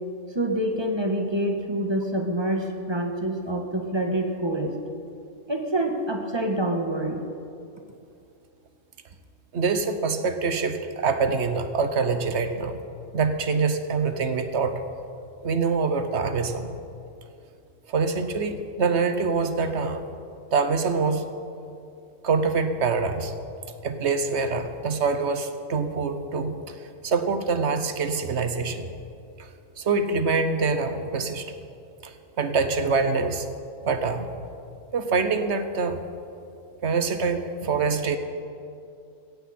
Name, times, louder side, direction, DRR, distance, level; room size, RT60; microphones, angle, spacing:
voice 1, 0.3-4.7 5.5-7.2, right 1 dB, 20° right, 3 dB, 1.4 m, -26 dB
voice 2, 9.5-12.8 13.1-14.7 15.4-16.7 17.9-20.0 20.5-21.2 22.2-23.3 23.8-26.5 27.0-28.9 29.8-31.5 32.0-33.5 33.8-34.3 34.9-36.0 36.8-38.2, right 4 dB, 60° right, 9 dB, 1.2 m, -25 dB
16.0 x 15.0 x 4.3 m, 2.6 s
omnidirectional pair, 1.3 m